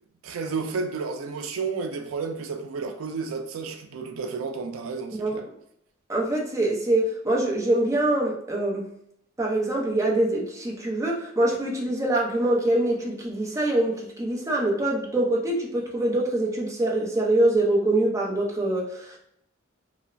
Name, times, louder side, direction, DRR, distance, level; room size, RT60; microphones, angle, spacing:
voice 1, 0.2-5.5, right 4 dB, 85° right, 0.4 m, -31 dB
voice 2, 6.1-8.9 9.4-19.2, right 1 dB, 15° right, 0.5 m, -24 dB
2.9 x 2.0 x 2.5 m
head